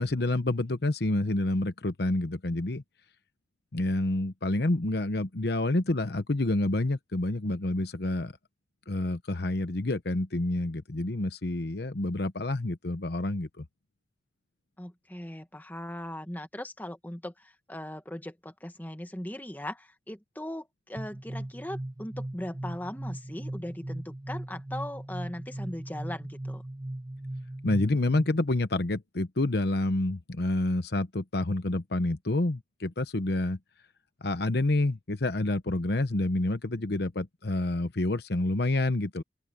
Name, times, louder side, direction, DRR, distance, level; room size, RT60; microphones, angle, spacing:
voice 1, 0.0-2.8 3.7-8.3 8.9-13.6 27.6-33.6 34.2-39.2, left 2 dB, 60° left, 1.0 m, -28 dB
voice 2, 14.8-26.6, left 1 dB, 10° left, 1.7 m, -39 dB
sound 1, 21.0-28.5, right 1 dB, 20° right, 0.6 m, -38 dB
open air
head